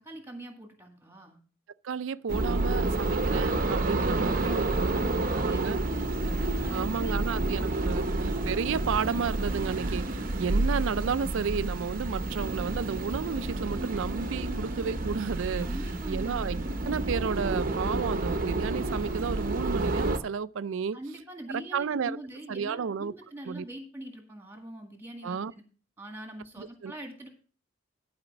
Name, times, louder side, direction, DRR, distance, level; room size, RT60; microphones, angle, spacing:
voice 1, 0.0-1.4 4.3-6.2 6.6-8.1 15.6-16.4 20.9-25.6 26.0-27.3, right 1 dB, 10° right, 1.9 m, -43 dB
voice 2, 1.8-5.8 6.7-15.7 16.1-21.0 21.5-22.2 22.5-23.1 23.5-23.6 25.2-25.5 26.6-26.9, right 6 dB, 75° right, 0.4 m, -32 dB
sound 1, 2.3-20.2, right 2 dB, 40° right, 0.8 m, -29 dB
11.5 x 4.9 x 6.0 m
head